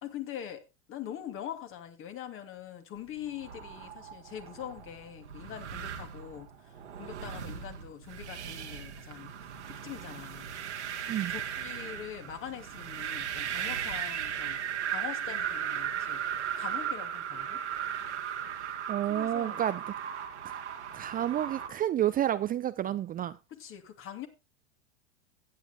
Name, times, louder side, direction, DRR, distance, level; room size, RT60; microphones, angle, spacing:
voice 1, 0.0-6.7 7.0-9.3 9.7-10.5 11.1-16.2 16.6-17.6 19.0-19.6 23.5-24.3, left 10 dB, 40° left, 2.6 m, -43 dB
sound 1, 3.2-21.7, right 9 dB, 85° right, 2.0 m, -37 dB
voice 2, 18.5-19.8 20.4-20.6 20.9-23.4, right 11 dB, 25° right, 0.6 m, -30 dB
16.0 x 9.9 x 2.2 m
hypercardioid pair, 95°, 34 cm